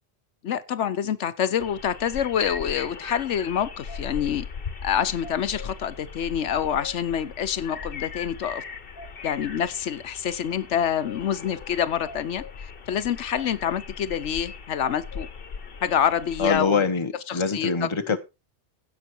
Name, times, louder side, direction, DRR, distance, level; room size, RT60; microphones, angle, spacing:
voice 1, 0.4-4.5 4.8-8.6 9.2-15.3 15.8-16.7 17.3-18.2, left 9 dB, 80° left, 1.1 m, -27 dB
sound 1, 1.6-16.6, left 5 dB, 55° left, 1.3 m, -39 dB
voice 2, 16.4-18.2, left 5 dB, 25° left, 1.0 m, -24 dB
16.0 x 6.2 x 4.5 m
omnidirectional pair, 1.2 m